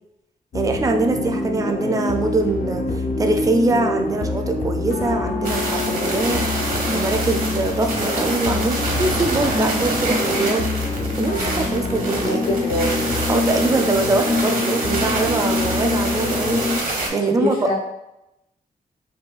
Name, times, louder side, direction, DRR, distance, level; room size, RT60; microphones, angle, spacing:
sound 1, 0.5-16.8, left 2 dB, 70° left, 0.5 m, -25 dB
voice 1, 0.5-10.7 11.2-12.4 13.3-16.6 17.1-17.7, right 2 dB, 25° right, 5 dB, 0.4 m, -23 dB
sound 2, 5.4-17.1, right 2 dB, 70° right, 0.8 m, -27 dB
voice 2, 12.2-13.0 17.1-17.7, left 2 dB, 90° left, -3 dB, 0.9 m, -24 dB
5.4 x 2.2 x 2.3 m, 0.89 s
wide cardioid pair, 145°, 15 cm